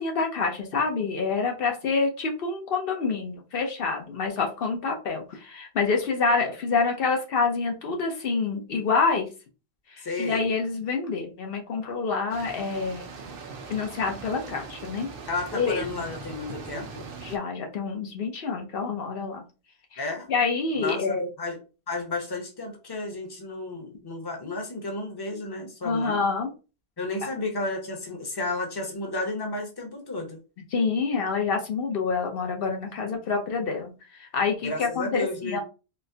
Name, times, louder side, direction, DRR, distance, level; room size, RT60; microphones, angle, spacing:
voice 1, 0.0-9.3 9.9-13.1 13.7-15.1 15.5-15.9 17.2-19.4 19.9-20.0 20.3-21.3 25.8-26.5 30.7-35.6, left 4 dB, 65° left, 2 dB, 0.9 m, -27 dB
voice 2, 10.0-10.4 15.3-17.0 20.0-20.3 20.7-21.6 21.9-26.2 27.0-30.4 34.6-35.6, left 2 dB, 25° left, 2 dB, 0.8 m, -32 dB
sound 1, 12.3-17.4, right 4 dB, 65° right, 0.8 m, -41 dB
4.2 x 2.1 x 2.7 m, 0.32 s
omnidirectional pair, 1.0 m